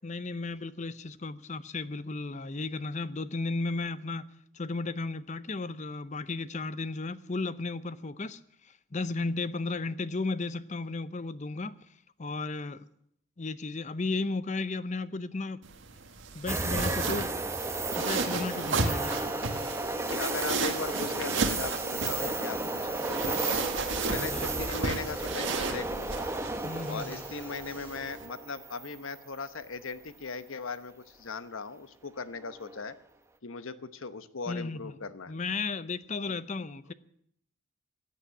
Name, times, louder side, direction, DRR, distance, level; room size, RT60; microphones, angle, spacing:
voice 1, 0.0-4.3 4.5-11.8 12.2-12.8 13.4-15.6 16.3-17.3 18.0-19.3 24.2-24.5 26.6-27.2 34.5-35.0 35.3-36.9, left 3 dB, 35° left, 0.6 m, -34 dB
sound 1, 15.6-28.2, right 3 dB, 65° right, 1.8 m, -35 dB
sound 2, 16.5-29.5 29.9-30.0 32.4-32.8, right 2 dB, 15° right, 0.9 m, -33 dB
scaryscape spyone, 19.0-28.0, right 1 dB, 10° left, 3.9 m, -51 dB
voice 2, 19.9-22.6 22.8-23.7 24.1-26.3 26.9-33.0 33.4-35.3 36.3-36.4, left 4 dB, 80° left, 1.0 m, -39 dB
15.5 x 8.6 x 10.0 m
head